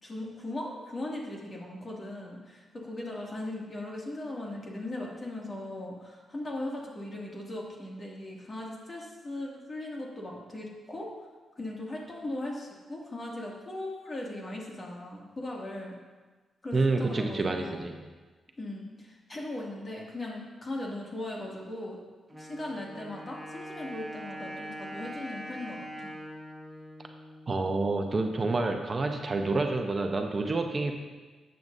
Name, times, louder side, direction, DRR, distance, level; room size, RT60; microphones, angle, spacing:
voice 1, 0.0-11.1 11.6-15.9 16.6-17.9 18.6-22.0 22.4-26.1, left 1 dB, 40° left, -3 dB, 2.3 m, -38 dB
voice 2, 16.7-17.9 27.5-30.9, right 3 dB, 40° right, 4 dB, 0.9 m, -28 dB
Wind instrument woodwind instrument, 22.3-28.0, equal, 5° right, 1.5 m, -43 dB
12.5 x 7.8 x 2.7 m, 1.3 s
cardioid pair, 70°, 0 cm